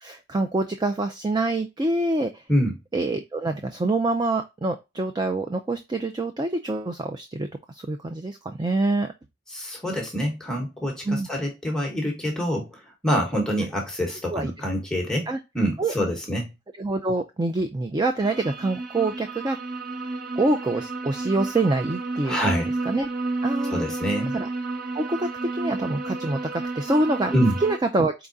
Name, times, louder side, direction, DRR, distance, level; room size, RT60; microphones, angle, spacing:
voice 1, 0.0-2.4 2.9-9.1 11.1-11.3 14.3-14.5 15.3-15.4 15.8-15.9 16.8-19.6 20.4-22.4 22.9-23.1 23.4-23.8 24.3-24.5 24.9-27.3 27.6-28.1, right 2 dB, 20° right, 0.4 m, -26 dB
voice 2, 9.5-15.3 15.5-16.5 22.2-22.7 23.7-24.3 27.3-27.6, equal, 5° left, 1.0 m, -26 dB
sound 1, 18.2-27.8, right 3 dB, 50° right, 0.8 m, -31 dB
4.7 x 3.5 x 2.5 m
head